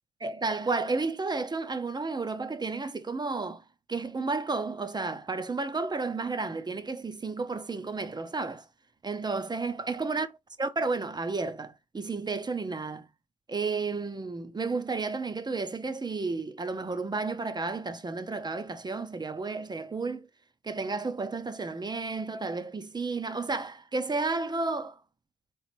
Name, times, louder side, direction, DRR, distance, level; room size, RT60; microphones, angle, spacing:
voice 1, 0.2-3.6 3.9-8.7 9.0-10.3 10.6-13.1 13.5-20.3 20.6-25.0, right 3 dB, 25° right, 0.6 m, -32 dB
3.9 x 3.0 x 3.2 m
hypercardioid pair, 50°, 18 cm